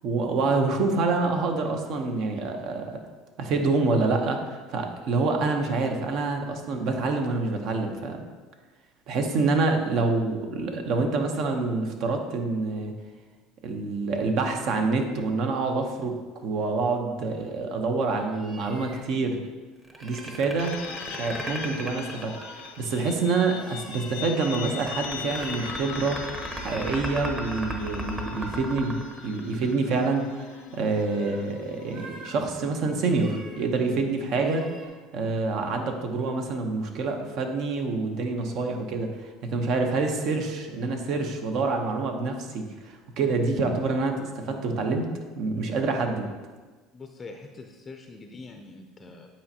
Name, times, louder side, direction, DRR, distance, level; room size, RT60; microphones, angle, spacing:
voice 1, 0.0-3.0 3.4-8.2 9.1-12.9 13.6-19.4 20.0-20.7 21.1-26.2 26.6-34.6 35.1-45.1 45.4-46.3, right 3 dB, 60° right, 4 dB, 0.8 m, -27 dB
sound 1, 18.3-19.0 19.9-20.5 20.9-21.5 22.0-23.0 23.5-24.7 25.2-25.9 26.4-27.1 27.6-27.7 29.7-29.8 30.2-30.6 30.9-31.4 31.8-32.3 32.9-33.7 34.4-34.9, right 2 dB, 35° right, 1.2 m, -48 dB
sound 2, 19.8-23.0 24.4-29.9, right 1 dB, 20° right, 0.9 m, -35 dB
sound 3, 20.6-33.1, left 8 dB, 80° left, 0.5 m, -41 dB
voice 2, 46.9-49.3, left 3 dB, 25° left, 4 dB, 0.5 m, -44 dB
8.5 x 4.3 x 2.8 m, 1.3 s
supercardioid pair, 105°, 0 cm